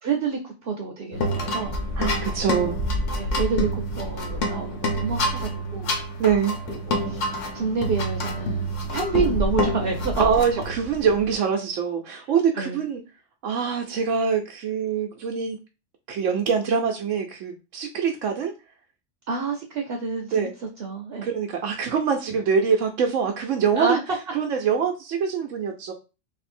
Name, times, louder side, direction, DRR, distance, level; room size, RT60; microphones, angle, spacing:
voice 1, 0.0-1.8 3.2-5.9 6.7-7.3 7.5-10.2 12.5-12.8 19.3-20.5 20.8-21.3 23.8-24.2, right 4 dB, 60° right, 2 dB, 0.8 m, -28 dB
sound 1, 1.1-11.3, equal, 75° left, 1.1 m, -27 dB
voice 2, 2.0-2.8 6.2-6.5 10.2-13.0 13.4-15.6 16.1-18.5 20.3-20.5 21.2-24.0 24.3-25.9, right 6 dB, 85° right, 2 dB, 1.0 m, -24 dB
3.2 x 2.6 x 4.2 m, 0.30 s
omnidirectional pair, 1.3 m